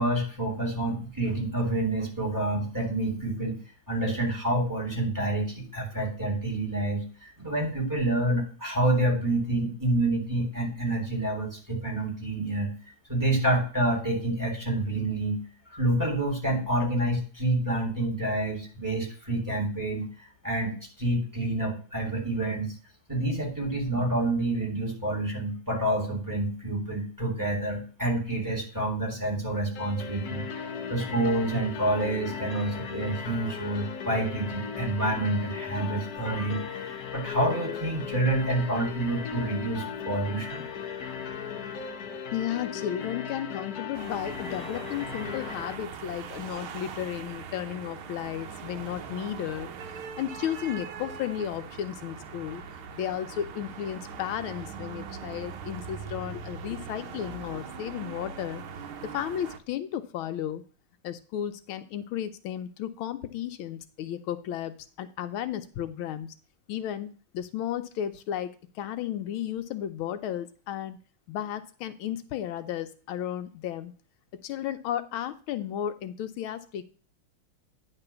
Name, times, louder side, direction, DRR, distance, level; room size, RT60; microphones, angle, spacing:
voice 1, 0.0-3.6 3.9-12.7 13.1-15.4 15.7-20.1 20.4-22.7 23.1-30.5 30.9-40.7 40.9-41.2, right 1 dB, 10° right, -1 dB, 2.6 m, -28 dB
sound 1, 29.7-45.7, left 7 dB, 55° left, 1.2 m, -37 dB
voice 2, 42.3-49.7 50.2-52.6 52.9-58.6 59.0-60.6 61.0-66.3 66.7-71.0 71.3-73.9 74.4-76.8, left 10 dB, 80° left, 9 dB, 1.5 m, -34 dB
sound 2, 43.9-59.6, right 6 dB, 90° right, 1.8 m, -41 dB
9.9 x 3.8 x 6.7 m, 0.40 s
omnidirectional pair, 2.3 m